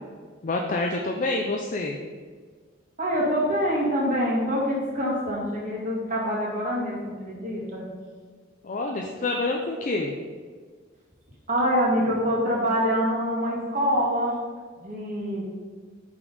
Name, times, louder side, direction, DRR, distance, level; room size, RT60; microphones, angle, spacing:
voice 1, 0.4-2.0 8.6-10.1, left 2 dB, 40° left, 1 dB, 0.4 m, -27 dB
voice 2, 3.0-7.8 11.5-14.3 14.8-15.4, equal, 40° right, -5 dB, 1.8 m, -25 dB
5.8 x 4.1 x 5.3 m, 1.6 s
head